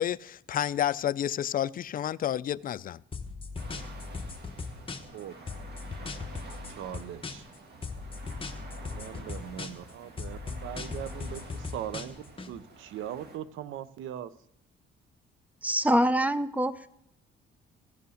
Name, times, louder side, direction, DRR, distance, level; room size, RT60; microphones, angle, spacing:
voice 1, 0.0-3.0, left 10 dB, 45° left, 0.4 m, -30 dB
sound 1, 3.1-5.2 5.5-7.6 7.8-9.9 10.2-12.5, left 4 dB, 25° left, 1.0 m, -38 dB
sound 2, 3.6-13.4, right 3 dB, 55° right, 1.9 m, -49 dB
voice 2, 6.8-7.4 8.9-14.3, right 10 dB, 80° right, 0.6 m, -40 dB
voice 3, 15.6-16.9, equal, 5° right, 0.6 m, -25 dB
15.5 x 5.6 x 6.3 m
cardioid pair, 90°, 20 cm